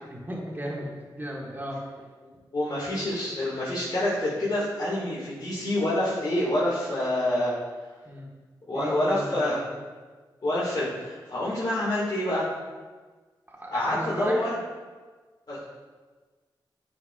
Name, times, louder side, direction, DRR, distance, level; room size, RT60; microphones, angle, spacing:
voice 1, 0.0-0.9 1.2-1.8 8.0-8.2 8.7-9.7 13.5-14.5, equal, 25° right, -3 dB, 1.7 m, -35 dB
voice 2, 2.2-7.6 8.7-9.6 10.4-12.5 13.7-14.5 15.5-15.6, left 1 dB, 55° left, -9 dB, 1.9 m, -27 dB
9.6 x 4.6 x 2.4 m, 1.4 s
cardioid pair, 50°, 9 cm